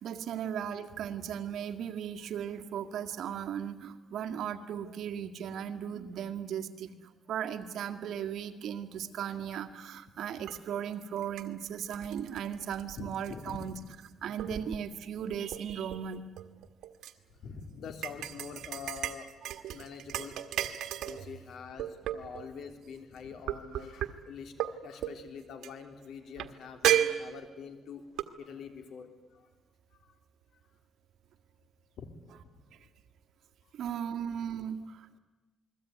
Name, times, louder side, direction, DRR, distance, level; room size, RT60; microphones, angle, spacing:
voice 1, 0.0-6.9 7.3-13.8 14.2-16.2 33.7-35.2, right 8 dB, 75° right, 6 dB, 2.0 m, -37 dB
sound 1, 10.5-10.6 11.0-14.1 14.4-14.9 15.3-17.1 18.0-21.3 21.8-22.5 23.5-24.1 24.6-24.7 25.0-25.2 25.6-25.7 26.4-26.5 26.8-27.7 28.2-28.3, right 11 dB, 90° right, 1.6 m, -33 dB
voice 2, 13.0-13.7 14.5-14.6 17.4-19.4 19.7-20.4 21.1-28.0 28.4-29.1 32.0-32.1, left 6 dB, 70° left, 7 dB, 3.6 m, -45 dB
28.5 x 21.5 x 9.5 m, 1.2 s
cardioid pair, 120°, 0 cm